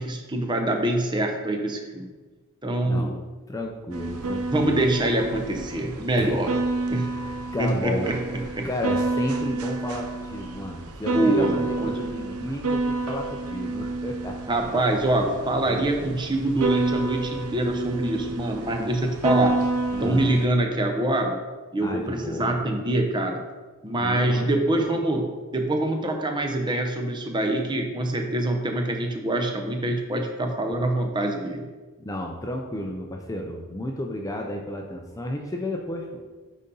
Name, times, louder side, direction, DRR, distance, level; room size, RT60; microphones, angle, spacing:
voice 1, 0.0-2.1 2.6-3.1 4.5-6.5 6.9-7.1 7.6-8.7 11.1-11.5 11.8-11.9 14.5-19.6 20.0-21.4 21.7-23.4 23.8-31.6, right 1 dB, 20° right, 4 dB, 0.7 m, -25 dB
voice 2, 2.9-3.2 3.5-4.8 6.2-6.5 7.1-14.4 15.2-15.9 19.9-20.3 21.8-22.6 24.0-25.0 32.0-36.2, left 1 dB, 15° left, 2 dB, 0.5 m, -33 dB
sound 1, 3.9-20.5, right 2 dB, 85° right, 0.7 m, -29 dB
9.2 x 4.1 x 3.9 m, 1.3 s
head